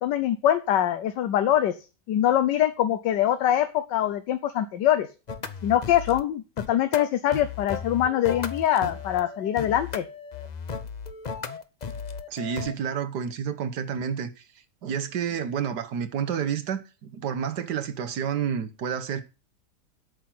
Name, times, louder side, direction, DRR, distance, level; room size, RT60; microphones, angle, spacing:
voice 1, 0.0-1.8 2.1-5.1 5.6-6.4 6.7-10.0, left 11 dB, 90° left, 1.4 m, -23 dB
sound 1, 5.3-6.2 6.6-12.7, left 6 dB, 45° left, 0.5 m, -35 dB
voice 2, 12.3-14.3 14.8-19.2, right 7 dB, 75° right, 1.6 m, -29 dB
8.5 x 6.3 x 7.6 m
omnidirectional pair, 1.8 m